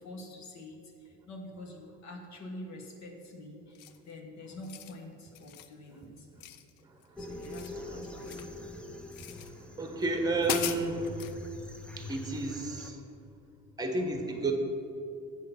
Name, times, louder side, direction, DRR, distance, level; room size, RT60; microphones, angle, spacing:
voice 1, 0.0-6.3 7.2-8.6, left 1 dB, 55° left, 2 dB, 1.2 m, -46 dB
sound 1, 3.7-4.1 4.5-5.0 5.3-5.7 6.4-7.1 7.3-8.6 9.1-9.5 10.0-10.1 10.4-11.4, left 10 dB, 85° left, 0.6 m, -39 dB
sound 2, 7.2-12.9, left 1 dB, 5° left, 0.5 m, -44 dB
voice 2, 7.7-8.1 9.2-11.3 12.0-13.0 13.8-14.5, right 2 dB, 10° right, 4 dB, 1.0 m, -32 dB
8.4 x 6.5 x 5.6 m, 2.6 s
cardioid pair, 145°, 33 cm